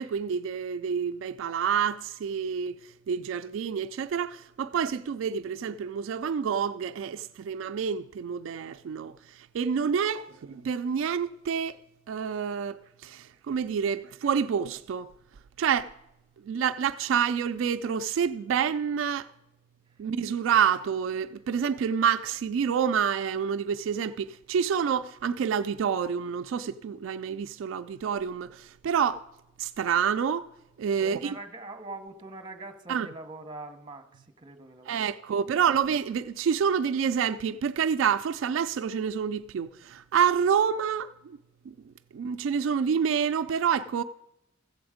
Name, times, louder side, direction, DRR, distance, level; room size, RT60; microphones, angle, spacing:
voice 1, 0.0-11.8 12.1-15.1 15.6-15.9 16.4-19.3 20.0-29.2 29.6-30.5 30.8-31.4 32.9-33.1 34.9-41.4 41.7-41.8 42.1-44.0, right 7 dB, 75° right, 0.3 m, -28 dB
voice 2, 31.0-35.4, right 2 dB, 25° right, 1.0 m, -43 dB
14.5 x 7.8 x 5.0 m
head